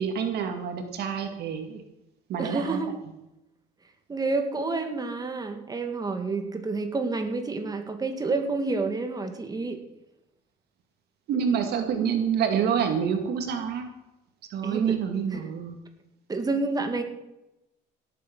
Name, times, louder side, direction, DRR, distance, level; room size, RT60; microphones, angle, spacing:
voice 1, 0.0-1.8 2.3-2.8 11.3-13.9 14.5-15.8, right 7 dB, 70° right, 5 dB, 2.2 m, -27 dB
voice 2, 2.4-2.9 4.1-9.8 14.6-15.0 15.3-15.4 16.3-17.0, right 3 dB, 20° right, 6 dB, 2.1 m, -29 dB
17.5 x 8.4 x 6.1 m, 0.92 s
cardioid pair, 110°, 17 cm